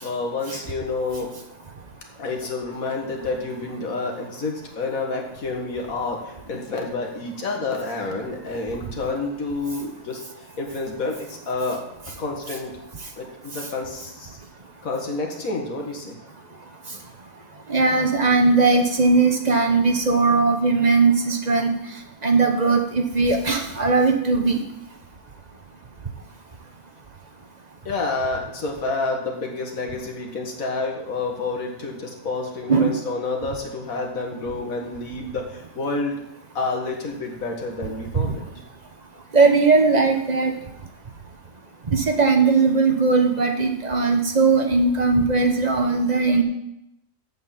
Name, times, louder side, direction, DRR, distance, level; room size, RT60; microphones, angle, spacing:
voice 1, 0.0-1.3 2.2-10.2 10.6-11.8 12.2-12.7 13.2-14.4 14.8-16.2 27.9-36.2 36.5-38.4, left 3 dB, 70° left, 1 dB, 2.0 m, -29 dB
voice 2, 17.7-21.7 22.2-24.6 32.7-33.0 38.2-38.3 39.3-40.5 41.9-46.4, right 4 dB, 30° right, 3 dB, 1.1 m, -19 dB
7.7 x 6.4 x 7.5 m, 0.83 s
omnidirectional pair, 1.5 m